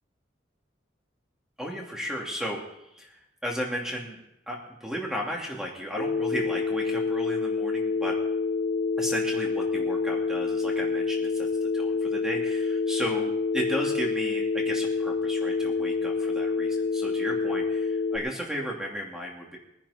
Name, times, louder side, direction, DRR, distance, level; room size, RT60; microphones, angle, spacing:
voice 1, 1.6-2.6 2.9-4.2 4.5-8.2 9.0-19.6, equal, 5° right, -1 dB, 2.6 m, -34 dB
Telephone, 6.0-18.2, left 4 dB, 65° left, 2.7 m, -27 dB
22.0 x 10.5 x 4.3 m, 0.85 s
head